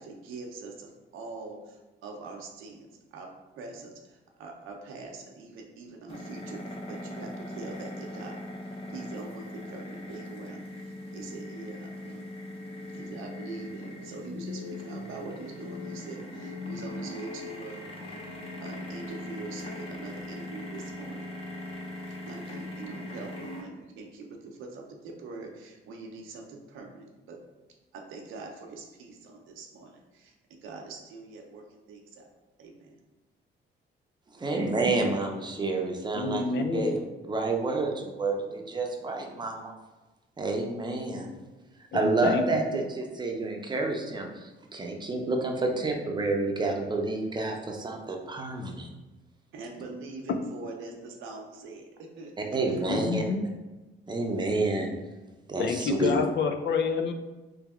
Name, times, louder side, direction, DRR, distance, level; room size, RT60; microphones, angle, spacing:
voice 1, 0.0-3.3 3.6-8.5 8.9-12.2 12.9-17.8 18.6-21.3 22.3-27.4 27.9-30.3 30.6-32.3 32.6-33.0 49.5-52.8 53.3-53.4, right 3 dB, 85° right, 1 dB, 0.7 m, -43 dB
sound 1, 6.1-23.6, left 1 dB, 30° left, 0.9 m, -40 dB
voice 2, 34.3-37.0 37.3-39.7 40.4-41.3 41.9-48.9 52.5-53.2 54.1-54.9 55.5-56.2, right 2 dB, 20° right, 1 dB, 0.7 m, -29 dB
voice 3, 36.2-36.9 41.9-42.6 52.9-53.5 55.6-57.1, left 5 dB, 60° left, 6 dB, 0.5 m, -28 dB
3.4 x 3.0 x 3.6 m, 1.1 s
cardioid pair, 90°, 20 cm